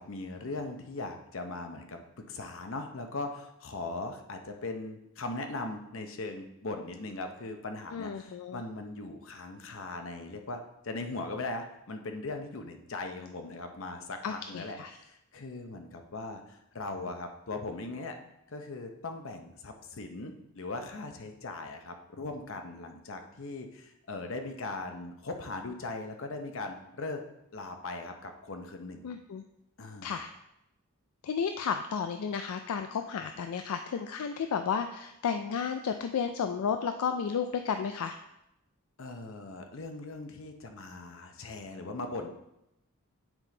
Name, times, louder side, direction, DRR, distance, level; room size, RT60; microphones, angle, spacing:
voice 1, 0.0-2.0 2.3-18.2 18.5-27.2 27.5-29.1 29.8-30.1 39.0-42.3, left 2 dB, 60° left, 5 dB, 0.7 m, -39 dB
voice 2, 7.9-8.6 14.2-15.0 29.0-29.4 30.0-30.3 31.2-38.2, left 6 dB, 75° left, 7 dB, 0.3 m, -32 dB
9.0 x 3.7 x 3.9 m, 0.85 s
head